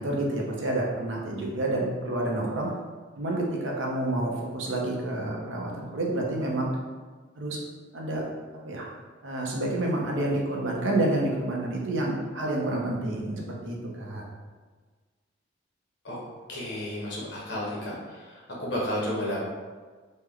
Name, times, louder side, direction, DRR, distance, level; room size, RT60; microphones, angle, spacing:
voice 1, 0.0-2.7 3.2-6.7 7.4-7.6 7.9-8.2 8.6-8.9 9.2-14.2, right 1 dB, 80° right, -2 dB, 0.7 m, -29 dB
voice 2, 16.5-17.9 18.6-19.4, left 1 dB, 60° left, -4 dB, 0.9 m, -31 dB
3.2 x 2.1 x 3.6 m, 1.4 s
head